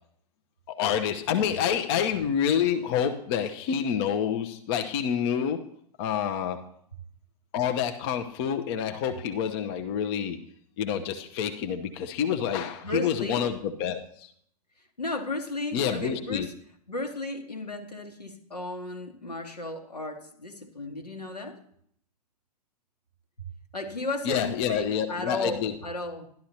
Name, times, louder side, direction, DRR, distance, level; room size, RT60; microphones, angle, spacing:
voice 1, 0.7-5.7 6.0-6.6 7.5-10.4 10.8-14.3 15.7-16.5 24.2-25.7, left 8 dB, 40° left, 6 dB, 0.8 m, -28 dB
voice 2, 12.8-13.5 15.0-16.5 16.9-21.6 23.7-26.3, left 2 dB, 85° left, 3 dB, 1.6 m, -34 dB
12.0 x 11.5 x 2.8 m, 0.66 s
figure-of-eight pair, 105°, 20 cm